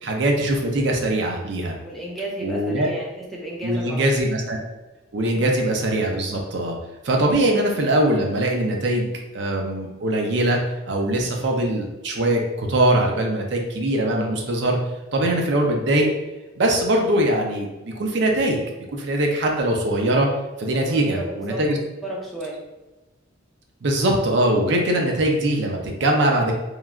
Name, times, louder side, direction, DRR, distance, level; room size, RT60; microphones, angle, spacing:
voice 1, 0.0-1.8 2.4-2.9 3.6-4.6 5.1-6.8 7.0-9.1 9.3-10.6 10.8-14.8 15.1-16.1 16.6-18.6 18.9-20.3 20.6-21.8 23.8-26.5, right 1 dB, 60° right, 1 dB, 0.5 m, -21 dB
voice 2, 1.8-4.2 5.3-5.5 15.3-15.5 20.8-21.7 22.0-22.6, right 1 dB, ahead, -4 dB, 0.5 m, -34 dB
3.1 x 2.3 x 2.3 m, 1.1 s
head